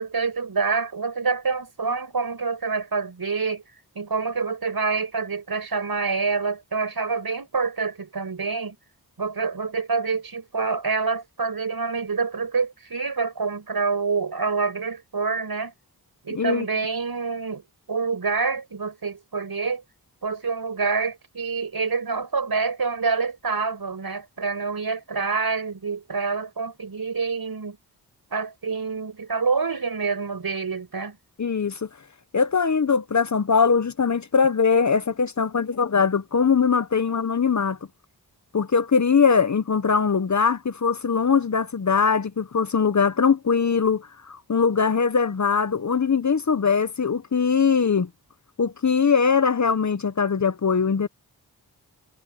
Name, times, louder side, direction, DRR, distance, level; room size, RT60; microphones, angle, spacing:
voice 1, 0.0-3.6 4.0-8.8 9.2-15.7 16.2-17.6 17.9-19.8 20.2-27.8 28.3-31.2, right 4 dB, 65° right, 5.6 m, -27 dB
voice 2, 16.3-16.7 31.4-31.9 32.3-37.8 38.5-48.1 48.6-51.1, left 5 dB, 45° left, 0.9 m, -21 dB
wide cardioid pair, 70°, 39 cm